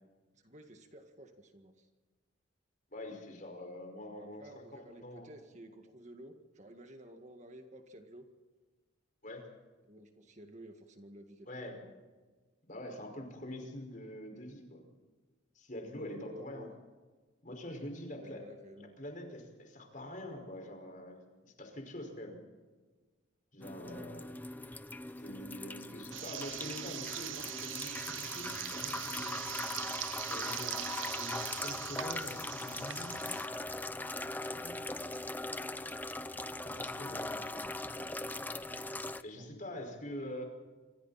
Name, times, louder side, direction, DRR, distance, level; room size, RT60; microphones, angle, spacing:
voice 1, 0.3-1.9 4.2-8.3 9.8-12.0 15.9-16.8 18.2-19.0 23.7-24.2 36.9-38.8 39.3-40.4, right 1 dB, 35° right, 5 dB, 2.0 m, -53 dB
voice 2, 2.9-4.4 4.7-5.3 9.2-9.5 11.5-11.7 12.7-14.8 15.6-16.7 17.4-18.4 18.8-21.2 21.4-22.4 23.5-24.3 25.2-29.4 30.3-30.8 31.1-33.2 34.4-34.8 36.6-37.3 39.2-40.4, left 1 dB, 40° left, 3 dB, 5.4 m, -45 dB
sound 1, 23.6-39.2, left 2 dB, 10° left, 0.6 m, -40 dB
sound 2, 26.1-33.5, right 13 dB, 75° right, 0.6 m, -42 dB
27.0 x 26.5 x 4.3 m, 1.3 s
head